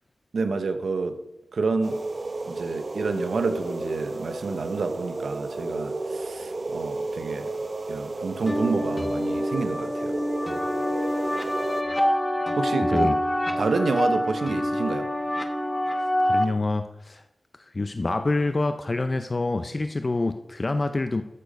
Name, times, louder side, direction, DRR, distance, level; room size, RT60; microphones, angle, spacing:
voice 1, 0.3-1.2 1.5-2.0 2.5-7.5 7.9-10.2 12.5-13.1 13.6-15.1, right 4 dB, 75° right, 0.9 m, -29 dB
sound 1, 1.8-11.8, right 2 dB, 45° right, 1.0 m, -32 dB
sound 2, 8.5-16.4, left 1 dB, 15° left, 1.3 m, -26 dB
voice 2, 12.8-13.2 16.2-17.2 17.7-21.2, left 2 dB, 35° left, 0.5 m, -26 dB
13.0 x 6.8 x 5.2 m
cardioid pair, 65°, 0 cm